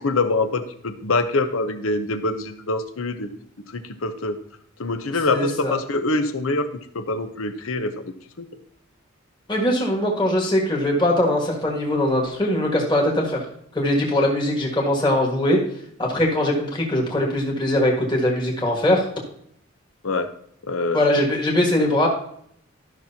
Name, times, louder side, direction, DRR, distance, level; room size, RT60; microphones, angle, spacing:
voice 1, 0.0-3.3 3.7-4.4 4.8-8.0 8.4-8.5 20.0-20.3 20.6-21.0, left 2 dB, 85° left, 9 dB, 0.8 m, -25 dB
voice 2, 5.3-5.7 9.5-13.4 13.7-15.6 16.0-19.1 20.9-22.1, left 1 dB, 20° left, -2 dB, 1.7 m, -21 dB
13.0 x 6.1 x 2.8 m, 0.68 s
head